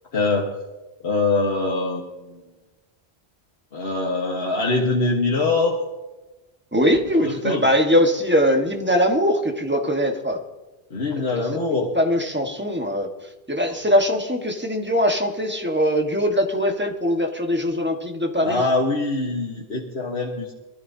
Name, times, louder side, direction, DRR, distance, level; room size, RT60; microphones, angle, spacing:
voice 1, 0.1-0.5 1.0-2.4 3.7-5.8 7.2-7.7 10.9-11.9 18.4-20.5, left 3 dB, 75° left, -2 dB, 1.6 m, -23 dB
voice 2, 6.7-10.4 11.3-11.4 11.9-13.1 13.5-18.6, equal, 10° right, 3 dB, 1.4 m, -21 dB
22.5 x 13.0 x 2.8 m, 1.1 s
omnidirectional pair, 1.1 m